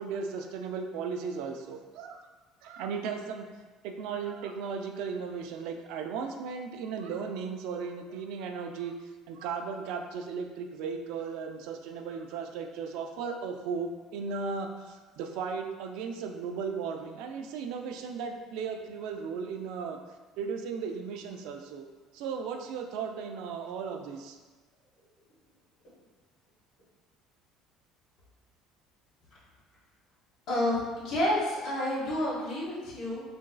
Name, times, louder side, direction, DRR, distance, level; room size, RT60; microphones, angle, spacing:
voice 1, 0.0-2.3 2.6-3.5 3.8-8.9 9.3-20.0 20.4-21.8 22.1-24.4, right 5 dB, 65° right, 5 dB, 0.3 m, -36 dB
voice 2, 30.5-33.2, left 1 dB, 45° left, -9 dB, 1.0 m, -29 dB
3.9 x 2.5 x 2.2 m, 1.3 s
cardioid pair, 175°, 0 cm